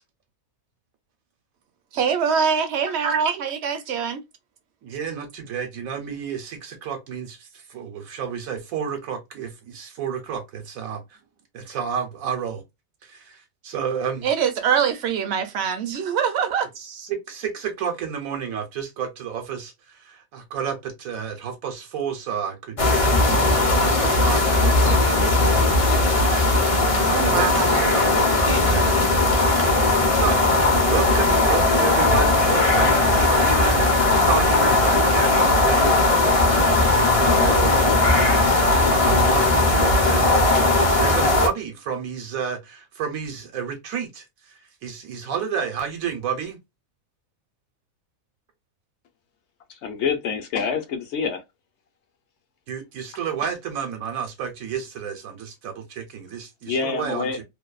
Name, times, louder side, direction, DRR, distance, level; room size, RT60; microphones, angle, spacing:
voice 1, 1.9-4.2 14.2-16.7 26.9-27.8, right 7 dB, 60° right, 0.8 m, -23 dB
voice 2, 4.8-11.2 11.5-12.6 13.0-14.3 16.8-28.3 28.6-29.8 30.1-46.6 52.7-57.4, right 7 dB, 80° right, 1.1 m, -31 dB
sound 1, 22.8-41.5, left 2 dB, 40° left, 0.5 m, -18 dB
voice 3, 49.7-51.4 56.7-57.4, left 5 dB, 65° left, 0.8 m, -26 dB
2.6 x 2.2 x 2.3 m
omnidirectional pair, 1.4 m